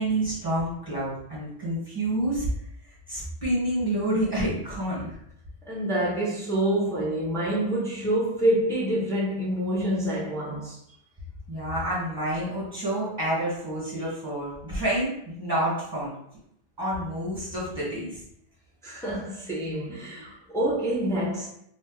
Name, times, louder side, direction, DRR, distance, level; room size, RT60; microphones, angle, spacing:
voice 1, 0.0-2.5 3.1-5.1 11.5-16.1 16.8-18.2, right 1 dB, 15° right, 1.4 m, -28 dB
voice 2, 5.6-10.8 18.8-21.5, right 1 dB, 5° left, 0.6 m, -27 dB
2.8 x 2.6 x 3.8 m
omnidirectional pair, 1.4 m